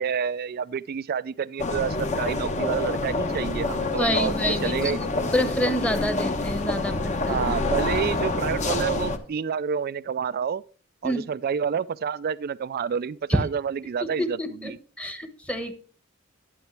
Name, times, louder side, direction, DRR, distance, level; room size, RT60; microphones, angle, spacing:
voice 1, 0.0-5.0 7.3-10.6 11.0-14.4 14.6-14.8, right 7 dB, 50° right, 0.4 m, -29 dB
sound 1, 1.6-9.2, left 2 dB, 35° left, 1.1 m, -27 dB
voice 2, 4.0-4.9 5.3-7.4 11.0-11.3 13.3-13.4 14.0-15.7, equal, 5° left, 1.1 m, -27 dB
11.0 x 9.1 x 3.3 m
head